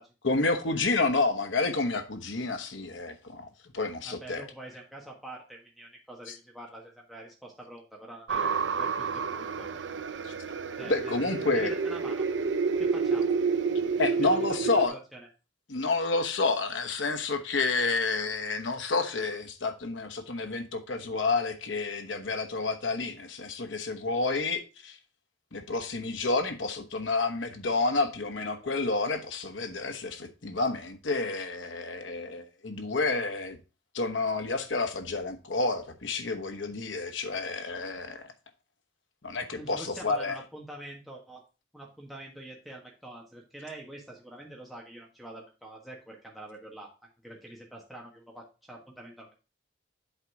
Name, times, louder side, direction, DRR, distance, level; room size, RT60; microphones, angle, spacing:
voice 1, 0.2-3.5 3.7-4.4 6.3-6.4 10.2-10.3 10.8-11.7 14.0-14.9 15.7-25.0 25.5-33.6 33.9-38.3 39.2-40.3, left 3 dB, 90° left, 1.1 m, -29 dB
voice 2, 4.0-9.7 10.8-12.2 12.8-13.3 14.0-15.3 39.5-41.4 41.7-46.9 47.2-49.3, right 1 dB, ahead, 1.3 m, -45 dB
sound 1, 8.3-14.9, right 5 dB, 75° right, 0.6 m, -29 dB
8.0 x 4.1 x 4.7 m
head